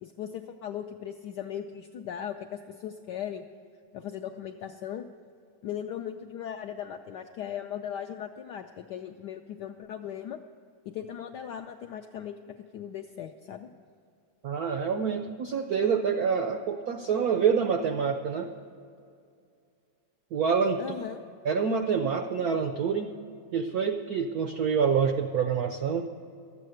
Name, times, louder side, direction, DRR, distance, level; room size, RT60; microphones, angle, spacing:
voice 1, 0.0-3.4 3.9-5.0 5.6-10.4 10.9-13.7 20.8-21.2, left 9 dB, 80° left, 5 dB, 0.9 m, -38 dB
voice 2, 14.4-18.5 20.3-20.8 21.4-23.1 23.5-26.0, right 6 dB, 80° right, 6 dB, 0.8 m, -27 dB
12.5 x 8.4 x 7.7 m, 2.4 s
omnidirectional pair, 2.3 m